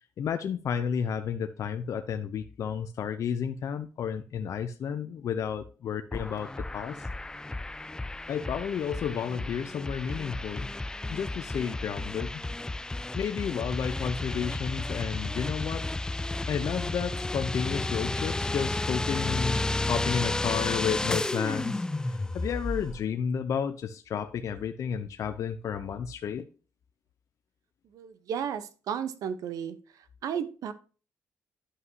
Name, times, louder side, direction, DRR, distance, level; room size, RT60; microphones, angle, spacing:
voice 1, 0.2-7.1 8.3-10.7 11.1-12.4 13.1-15.9 16.5-26.5, left 7 dB, 60° left, 8 dB, 0.6 m, -32 dB
sound 1, 6.1-23.0, left 2 dB, 10° left, 0.3 m, -32 dB
voice 2, 27.9-29.8 30.2-30.7, right 8 dB, 75° right, 12 dB, 0.8 m, -33 dB
11.0 x 5.5 x 2.7 m, 0.36 s
cardioid pair, 85°, 6 cm